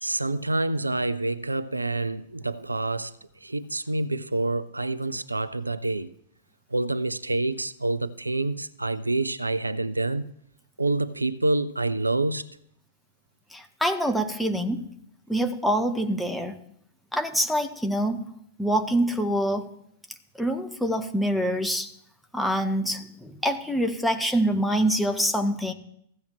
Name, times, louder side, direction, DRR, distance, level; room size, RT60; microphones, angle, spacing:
voice 1, 0.0-3.1 3.4-6.1 6.7-10.3 10.8-12.5, right 2 dB, 90° right, 0.4 m, -27 dB
voice 2, 13.5-14.9 15.3-16.6 17.1-18.3 18.6-19.7 20.4-21.9 22.3-25.7, equal, 5° left, 1.1 m, -25 dB
15.5 x 7.0 x 3.1 m
figure-of-eight pair, 100°, 0 cm